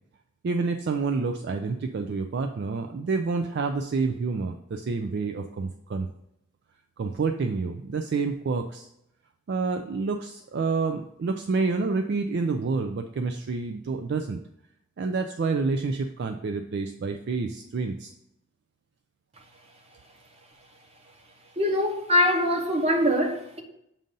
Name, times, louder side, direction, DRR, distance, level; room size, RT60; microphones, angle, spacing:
voice 1, 0.4-6.1 7.0-8.9 9.5-14.4 15.0-18.1, right 4 dB, 50° right, 0.3 m, -28 dB
voice 2, 21.6-23.6, left 1 dB, 30° right, 0.9 m, -23 dB
7.5 x 2.6 x 5.3 m
head